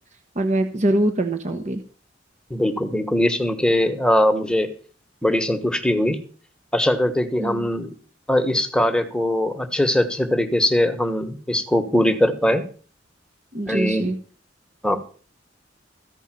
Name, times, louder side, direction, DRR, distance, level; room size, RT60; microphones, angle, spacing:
voice 1, 0.3-1.8 7.4-7.7 13.5-14.2, right 1 dB, 40° right, 7 dB, 1.1 m, -23 dB
voice 2, 2.5-4.7 5.2-6.2 6.7-7.9 8.3-12.6 13.7-14.1 14.8-15.0, left 1 dB, 5° left, 7 dB, 1.3 m, -21 dB
14.5 x 5.4 x 9.0 m, 0.41 s
head